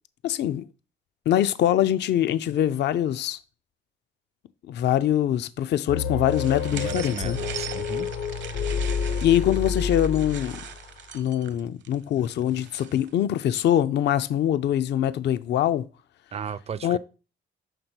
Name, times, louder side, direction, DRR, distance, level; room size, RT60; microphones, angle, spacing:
voice 1, 0.2-0.7 1.3-3.4 4.7-7.4 9.2-10.6 11.1-15.9 16.8-17.0, left 11 dB, 60° left, 0.4 m, -23 dB
sound 1, 5.9-10.9, left 6 dB, 80° left, 0.9 m, -29 dB
sound 2, 6.3-13.1, right 8 dB, 65° right, 0.8 m, -41 dB
voice 2, 6.7-8.1 16.3-17.0, right 7 dB, 30° right, 0.4 m, -35 dB
6.7 x 3.7 x 4.4 m
cardioid pair, 90°, 20 cm